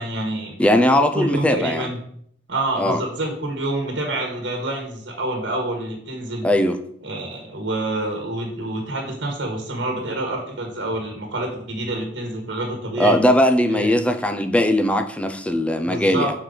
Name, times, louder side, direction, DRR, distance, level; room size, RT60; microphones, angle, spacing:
voice 1, 0.0-0.5 1.1-2.0 2.5-6.5 7.0-13.2 13.7-14.0 15.8-16.3, right 2 dB, 65° right, 2 dB, 1.4 m, -27 dB
voice 2, 0.6-1.9 2.8-3.0 6.4-6.8 13.0-16.3, left 1 dB, 5° left, 7 dB, 0.4 m, -19 dB
6.4 x 4.5 x 3.8 m, 0.66 s
head